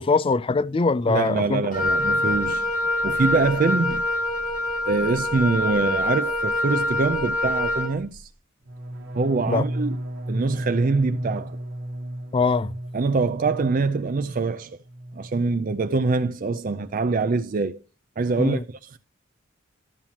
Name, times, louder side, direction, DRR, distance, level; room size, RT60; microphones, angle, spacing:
voice 1, 0.0-1.6 9.5-9.6 12.3-12.7 18.4-18.6, left 4 dB, 25° left, 0.3 m, -22 dB
voice 2, 1.1-2.7 3.0-4.0 4.9-8.3 9.1-10.0 10.3-11.6 12.9-14.8 15.1-17.8 18.2-19.0, right 3 dB, 40° right, 0.4 m, -24 dB
Wind instrument woodwind instrument, 1.7-8.0, left 1 dB, 45° left, 1.8 m, -25 dB
sound 1, 8.6-14.5 14.8-15.3 15.6-16.0, right 1 dB, 60° right, 1.3 m, -33 dB
12.5 x 7.3 x 2.9 m
head